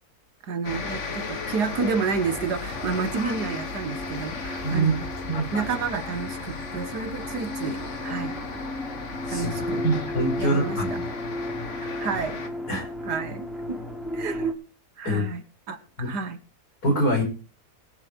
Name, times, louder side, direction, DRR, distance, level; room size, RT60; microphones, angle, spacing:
voice 1, 0.4-5.0 5.5-8.4 9.3-9.8 10.4-11.0 11.8-12.4 13.0-13.8 14.1-14.5 15.0-16.4, right 5 dB, 90° right, 10 dB, 2.0 m, -30 dB
sound 1, 0.6-12.5, left 4 dB, 50° left, 1.8 m, -36 dB
sound 2, 1.7-14.5, left 1 dB, ahead, 3.3 m, -35 dB
voice 2, 4.6-4.9 5.3-5.5 9.3-9.5 9.8-10.9 12.7-12.9 15.0-15.2 16.0-16.1 16.8-17.2, right 1 dB, 70° left, 1 dB, 6.5 m, -24 dB
21.5 x 7.6 x 4.6 m, 0.36 s
omnidirectional pair, 1.7 m